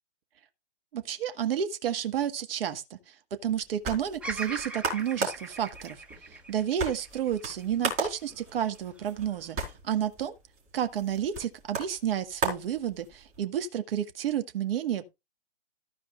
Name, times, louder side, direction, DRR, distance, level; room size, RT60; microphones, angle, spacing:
voice 1, 0.9-3.1 3.4-6.0 6.5-9.6 9.8-10.3 10.7-15.1, right 9 dB, 55° right, 1.7 m, -31 dB
sound 1, 3.4-13.4, right 4 dB, 20° right, 4.1 m, -37 dB
Bird vocalization bird call bird song, 4.2-8.4 9.0-9.7, right 2 dB, 5° right, 1.0 m, -41 dB
14.5 x 5.0 x 4.1 m
hypercardioid pair, 130°, 35 cm